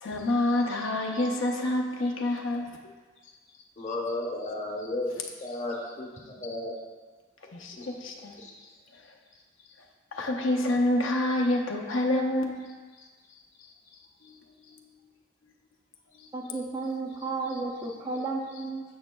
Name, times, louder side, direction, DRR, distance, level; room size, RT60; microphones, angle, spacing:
voice 1, 0.0-2.7 5.1-5.2 7.5-8.4 10.1-12.6 14.3-14.4 16.2-16.3 17.9-18.2, left 1 dB, 80° left, 1 dB, 0.6 m, -27 dB
voice 2, 3.8-5.1 5.4-6.8 7.7-7.9 8.4-8.5, left 2 dB, 35° left, -2 dB, 0.9 m, -34 dB
voice 3, 16.3-18.8, right 3 dB, 20° right, 1 dB, 0.4 m, -33 dB
7.8 x 6.1 x 2.2 m, 1.4 s
head